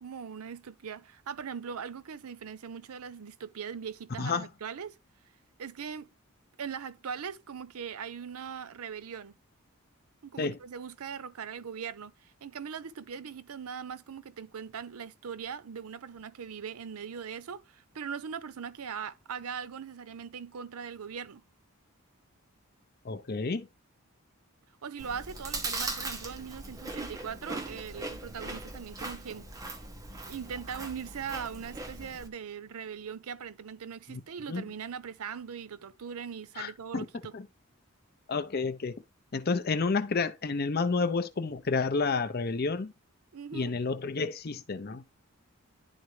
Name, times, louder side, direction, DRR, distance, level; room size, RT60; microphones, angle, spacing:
voice 1, 0.0-5.0 5.6-6.1 6.6-9.3 10.2-21.4 24.8-29.5 30.2-37.3 43.3-43.7, right 7 dB, 90° right, 0.6 m, -40 dB
voice 2, 23.0-23.7 34.1-34.2 34.5-34.6 36.6-37.1 37.3-37.5 38.3-39.0 39.3-42.9 43.5-45.0, left 4 dB, 45° left, 0.5 m, -30 dB
Chewing mastication, 25.0-32.3, right 2 dB, 15° right, 0.8 m, -39 dB
10.5 x 3.9 x 3.2 m
head